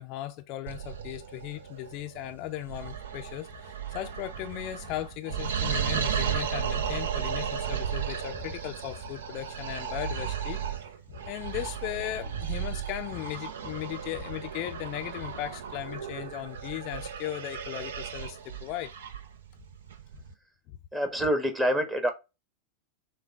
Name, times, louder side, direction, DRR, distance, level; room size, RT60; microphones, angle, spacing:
voice 1, 0.0-10.6 11.1-18.9 20.7-20.8, left 14 dB, 40° left, 0.5 m, -37 dB
sound 1, 0.7-20.3, right 8 dB, 60° right, 0.6 m, -35 dB
voice 2, 20.9-22.1, equal, 10° right, 1.1 m, -26 dB
6.5 x 2.2 x 3.6 m
figure-of-eight pair, 90°, 0 cm